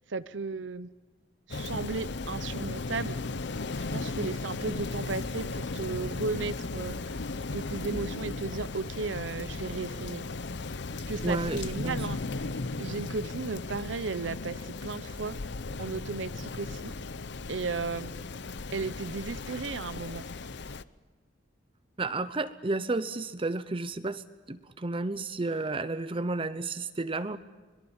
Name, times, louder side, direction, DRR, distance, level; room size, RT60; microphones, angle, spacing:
voice 1, 0.1-0.9 1.5-3.2 3.9-7.2 7.5-10.2 11.1-12.5 12.8-15.4 15.8-16.9 17.5-18.1 18.7-20.3, right 4 dB, 75° right, 14 dB, 0.7 m, -35 dB
Rain, 1.5-20.8, left 3 dB, 65° left, 0.8 m, -36 dB
voice 2, 11.2-12.1 22.0-27.4, right 2 dB, 30° right, 12 dB, 0.8 m, -32 dB
25.0 x 22.0 x 7.2 m, 1.4 s
head